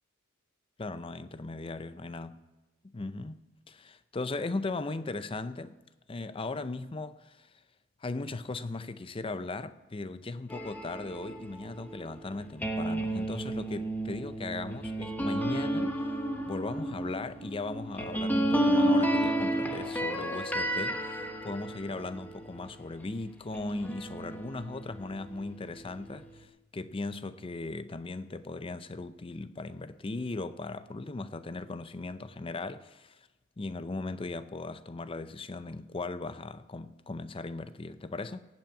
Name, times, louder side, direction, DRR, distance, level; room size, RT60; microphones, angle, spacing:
voice 1, 0.8-2.4 2.8-5.8 6.1-7.5 8.0-16.0 16.5-33.2 33.6-38.4, left 3 dB, 25° left, 0.5 m, -38 dB
sound 1, 10.5-23.0 23.5-26.4, right 1 dB, 10° left, 1.1 m, -32 dB
17.0 x 5.9 x 8.7 m
head